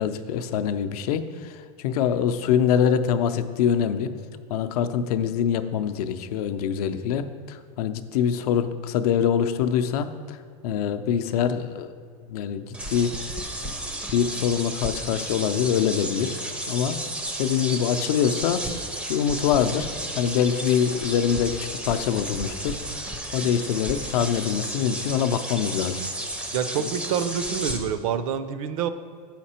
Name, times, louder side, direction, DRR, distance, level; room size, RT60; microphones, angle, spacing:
voice 1, 0.0-4.1 4.5-10.4 10.6-11.9 12.3-13.1 14.1-17.0 17.4-18.7 19.1-21.6 21.8-23.0 23.3-26.0, left 8 dB, 75° left, 10 dB, 0.5 m, -24 dB
sound 1, 12.7-27.8, right 1 dB, 5° right, 0.4 m, -33 dB
voice 2, 26.5-28.9, right 8 dB, 60° right, 11 dB, 0.5 m, -27 dB
7.4 x 5.8 x 4.3 m, 2.1 s
supercardioid pair, 175°, 19 cm